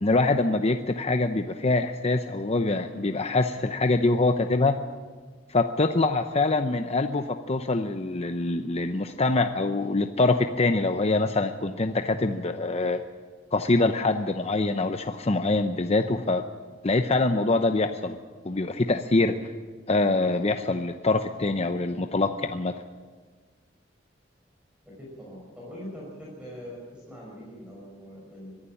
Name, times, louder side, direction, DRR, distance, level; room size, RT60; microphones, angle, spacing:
voice 1, 0.0-4.8 5.5-13.0 13.5-16.4 16.8-18.2 18.4-19.3 19.9-22.7, left 2 dB, 35° left, 7 dB, 0.7 m, -24 dB
voice 2, 24.8-28.6, equal, 5° right, -5 dB, 5.5 m, -42 dB
23.0 x 11.5 x 10.0 m, 1.5 s
head